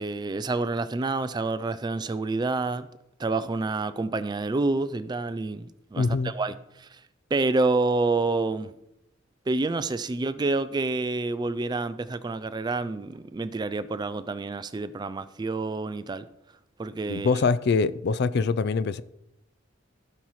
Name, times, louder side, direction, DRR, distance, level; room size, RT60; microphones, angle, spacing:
voice 1, 0.0-2.9 3.2-7.0 7.3-8.7 9.5-16.2 16.8-17.3, right 3 dB, 20° right, 0.3 m, -28 dB
voice 2, 6.0-6.3 17.1-19.0, left 4 dB, 55° left, 0.4 m, -24 dB
15.5 x 5.5 x 3.1 m
head